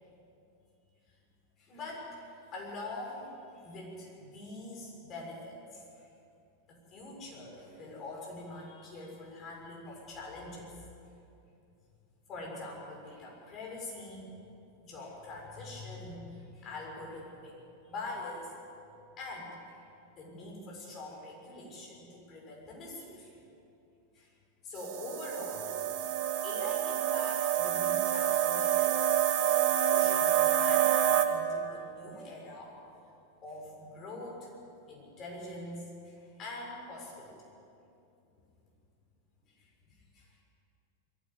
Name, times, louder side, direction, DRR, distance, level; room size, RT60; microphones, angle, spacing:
voice 1, 1.6-6.1 6.7-10.7 12.3-14.3 14.8-18.5 19.2-19.8 20.1-23.3 24.1-24.3 24.6-26.1 26.4-29.0 29.4-29.5 29.9-32.7 33.4-34.5 34.9-37.4 39.5-40.4, left 2 dB, 30° left, -2 dB, 6.8 m, -44 dB
sound 1, 24.8-31.3, right 10 dB, 40° right, 1.6 m, -27 dB
22.0 x 15.5 x 8.1 m, 2.6 s
figure-of-eight pair, 90°, 0 cm